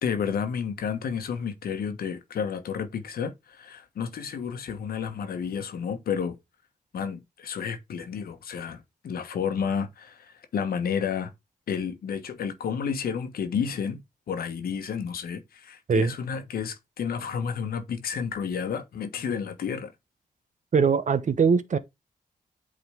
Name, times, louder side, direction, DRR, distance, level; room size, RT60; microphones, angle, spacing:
voice 1, 0.0-6.4 6.9-11.3 11.7-19.9, left 7 dB, 90° left, 1.3 m, -31 dB
voice 2, 20.7-21.8, right 5 dB, 55° right, 0.9 m, -21 dB
8.6 x 3.9 x 3.6 m
cardioid pair, 75°, 15 cm